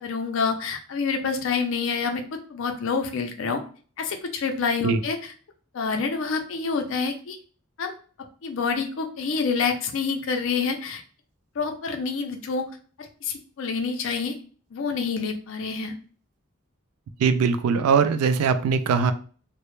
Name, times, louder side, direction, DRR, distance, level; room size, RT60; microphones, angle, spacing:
voice 1, 0.0-2.2 2.5-3.6 4.0-5.3 5.7-7.4 7.8-11.0 11.6-12.7 13.0-14.3 14.7-15.9, left 5 dB, 65° left, 5 dB, 0.4 m, -27 dB
voice 2, 17.2-19.1, right 5 dB, 85° right, 10 dB, 0.3 m, -21 dB
2.0 x 2.0 x 2.9 m, 0.40 s
head